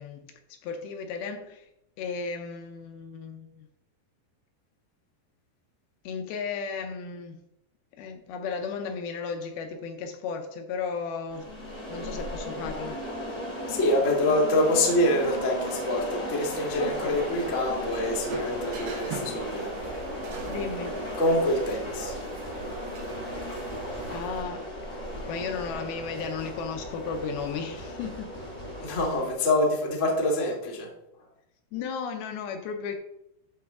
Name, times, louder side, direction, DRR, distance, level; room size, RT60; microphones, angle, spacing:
voice 1, 0.0-1.7 2.0-3.7 6.0-7.4 8.0-11.5 11.9-13.1 16.8-17.2 20.4-21.0 24.1-24.7 25.3-28.4 31.7-33.0, left 5 dB, 75° left, 5 dB, 2.5 m, -35 dB
sound 1, 11.3-29.3, equal, 25° left, 1.2 m, -36 dB
voice 2, 13.7-19.7 21.2-22.2 28.8-30.9, left 1 dB, 50° left, -2 dB, 0.9 m, -25 dB
sound 2, 16.7-24.4, right 4 dB, 75° right, 3.2 m, -40 dB
12.0 x 4.3 x 3.6 m, 0.83 s
omnidirectional pair, 4.7 m